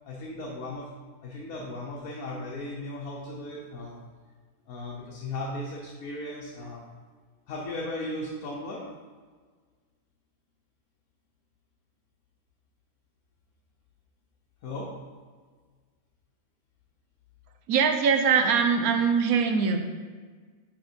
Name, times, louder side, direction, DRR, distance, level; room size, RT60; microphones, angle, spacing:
voice 1, 0.0-0.9 1.2-4.0 4.7-6.8 7.5-8.8 14.6-14.9, left 1 dB, 85° left, -3 dB, 1.4 m, -36 dB
voice 2, 17.7-19.8, right 6 dB, 85° right, 4 dB, 1.2 m, -22 dB
5.9 x 5.9 x 4.4 m, 1.5 s
omnidirectional pair, 1.5 m